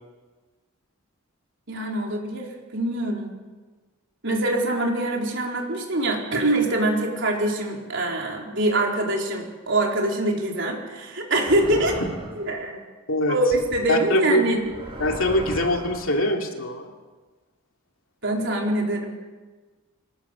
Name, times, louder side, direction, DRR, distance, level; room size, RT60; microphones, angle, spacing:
voice 1, 1.7-3.3 4.2-12.0 12.3-12.7 13.3-14.6 18.2-19.2, right 1 dB, 55° right, 0 dB, 4.2 m, -24 dB
sound 1, 11.5-12.5 13.5-13.8 14.5-16.1, equal, 25° right, 6.2 m, -36 dB
voice 2, 13.9-14.5 15.0-16.9, left 1 dB, 65° left, 3 dB, 2.7 m, -23 dB
24.5 x 19.5 x 7.0 m, 1.3 s
head